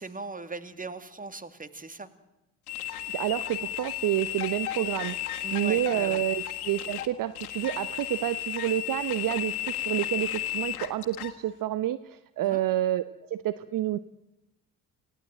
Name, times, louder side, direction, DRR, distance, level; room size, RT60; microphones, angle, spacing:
voice 1, 0.0-2.1 5.4-6.2 12.4-12.6, right 3 dB, 20° right, 12 dB, 2.4 m, -39 dB
sound 1, 2.7-11.3, left 13 dB, 80° left, 1.7 m, -34 dB
voice 2, 3.1-14.0, right 13 dB, 50° right, 14 dB, 1.0 m, -29 dB
28.5 x 17.5 x 9.1 m, 0.95 s
hypercardioid pair, 50°, 43 cm